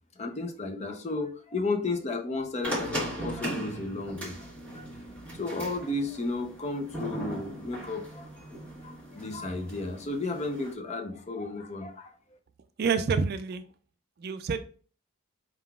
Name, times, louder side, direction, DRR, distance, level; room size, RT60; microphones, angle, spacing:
voice 1, 0.2-4.4 4.7-4.9 5.4-8.3 8.8-12.1, left 2 dB, 30° left, 5 dB, 0.6 m, -33 dB
sound 1, 2.6-10.7, right 1 dB, 5° left, 1.3 m, -38 dB
voice 2, 12.8-13.6 14.2-14.6, right 5 dB, 45° right, 10 dB, 0.3 m, -27 dB
4.6 x 3.7 x 2.3 m, 0.40 s
head